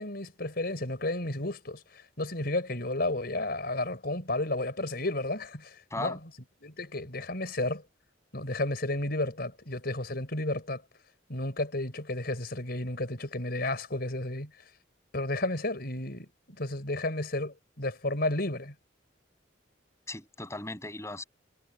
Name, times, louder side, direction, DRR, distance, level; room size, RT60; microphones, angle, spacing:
voice 1, 0.0-6.2 6.6-7.8 8.3-10.8 11.3-14.5 15.1-16.3 16.6-18.7, left 2 dB, 55° left, 5.1 m, -32 dB
voice 2, 20.1-21.2, left 2 dB, 15° left, 7.9 m, -37 dB
head